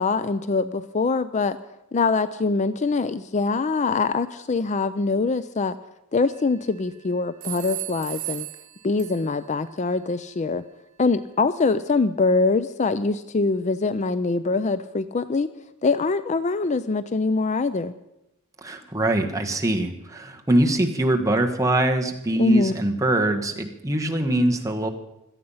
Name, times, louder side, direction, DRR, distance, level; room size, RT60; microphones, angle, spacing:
voice 1, 0.0-1.6 1.9-5.8 6.1-8.5 8.8-10.6 11.0-15.5 15.8-17.9 22.4-22.7, left 3 dB, 30° left, 14 dB, 0.4 m, -23 dB
sound 1, 6.2-6.9 7.4-9.6, right 17 dB, 75° right, 1.2 m, -36 dB
voice 2, 18.6-24.9, right 1 dB, 15° right, 3 dB, 1.4 m, -23 dB
17.5 x 13.0 x 5.6 m, 0.87 s
head